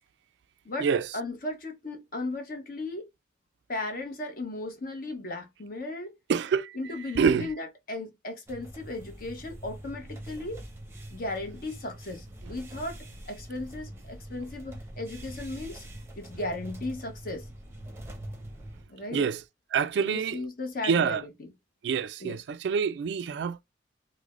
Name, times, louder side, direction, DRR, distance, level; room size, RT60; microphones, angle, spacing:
voice 1, 1.1-3.1 3.7-6.1 6.7-10.6 11.1-13.0 13.3-15.9 16.2-17.5 18.9-19.3 20.0-21.5 22.2-22.4, left 2 dB, 50° left, 0.9 m, -36 dB
voice 2, 6.3-6.8 7.2-7.5 19.1-19.4 19.7-20.4 20.8-21.2 21.8-23.6, right 6 dB, 65° right, 0.3 m, -26 dB
sound 1, 8.5-18.8, right 1 dB, 15° right, 0.7 m, -44 dB
4.7 x 2.1 x 2.4 m
head